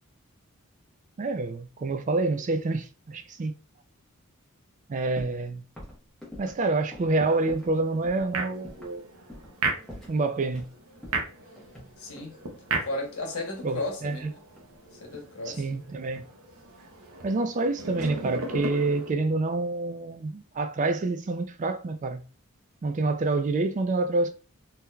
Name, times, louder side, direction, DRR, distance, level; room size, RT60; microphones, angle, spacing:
voice 1, 1.2-3.5 4.9-5.6 6.4-9.1 10.1-10.7 13.6-14.3 15.5-16.3 17.2-22.2 22.8-24.3, right 3 dB, 35° right, 0.3 m, -27 dB
sound 1, 5.2-5.5 5.8-7.8 8.0-8.3 8.6-9.0 9.3-9.6 9.9-10.7 11.0-12.4 13.3-14.2 14.5-15.0, left 1 dB, ahead, 1.1 m, -45 dB
sound 2, 7.2-19.1, right 3 dB, 85° right, 0.7 m, -37 dB
voice 2, 12.0-12.3 12.8-14.3 15.0-15.6, left 2 dB, 85° left, 1.0 m, -34 dB
3.6 x 2.8 x 2.2 m
head